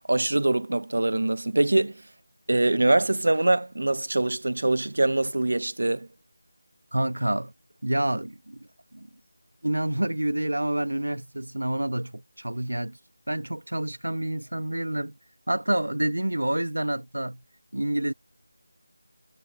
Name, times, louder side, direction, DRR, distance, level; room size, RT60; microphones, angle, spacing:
voice 1, 0.1-2.0 2.5-6.1, right 2 dB, 70° right, 0.9 m, -23 dB
voice 2, 6.9-7.5 7.8-9.1 9.6-13.0 13.3-15.1 15.5-17.4 17.7-18.1, right 1 dB, 90° right, 1.4 m, -28 dB
figure-of-eight pair, 170°, 0 cm